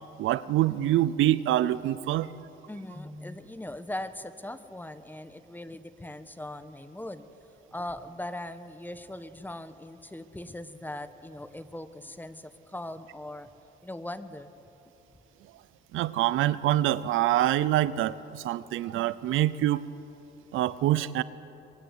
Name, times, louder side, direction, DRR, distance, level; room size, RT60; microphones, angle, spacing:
voice 1, 0.2-2.3 15.9-19.8 20.5-21.2, right 13 dB, 85° right, 17 dB, 0.7 m, -25 dB
voice 2, 2.7-13.5 13.8-14.5, left 1 dB, 10° left, 12 dB, 1.2 m, -40 dB
23.5 x 21.0 x 8.5 m, 3.0 s
cardioid pair, 90°, 20 cm